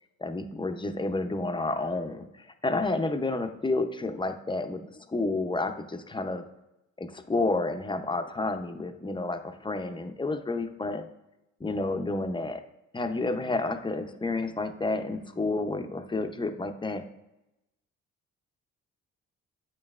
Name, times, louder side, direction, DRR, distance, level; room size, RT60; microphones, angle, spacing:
voice 1, 0.2-2.3 2.6-6.4 7.0-11.1 11.6-12.6 12.9-17.0, left 2 dB, 15° left, 7 dB, 0.5 m, -30 dB
8.3 x 5.3 x 2.4 m, 0.94 s
cardioid pair, 90°, 30 cm